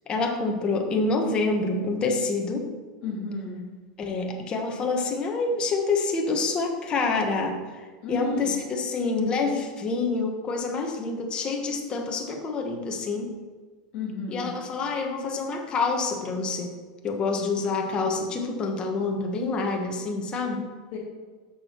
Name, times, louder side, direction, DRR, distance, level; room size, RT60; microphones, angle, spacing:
voice 1, 0.1-2.7 4.0-7.6 8.1-13.3 14.3-16.7 17.0-20.6, left 3 dB, 25° left, 2 dB, 1.5 m, -27 dB
voice 2, 3.0-3.6 8.0-8.6 13.9-14.5 20.9-21.0, left 3 dB, 50° left, -4 dB, 2.8 m, -32 dB
6.7 x 6.2 x 6.0 m, 1.4 s
supercardioid pair, 140°, 4 cm